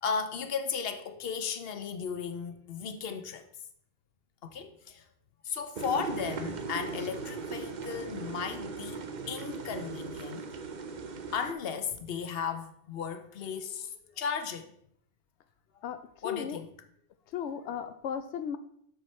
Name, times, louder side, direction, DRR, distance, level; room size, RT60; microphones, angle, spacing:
voice 1, 0.0-3.5 4.4-5.0 5.4-9.0 9.3-10.5 11.3-14.7 16.2-16.7, left 6 dB, 65° left, 1.0 m, -35 dB
sound 1, 5.8-11.5, right 4 dB, 45° right, 0.8 m, -38 dB
voice 2, 15.8-16.6 17.3-18.6, left 8 dB, 90° left, 0.9 m, -36 dB
7.9 x 6.1 x 4.3 m
omnidirectional pair, 1.1 m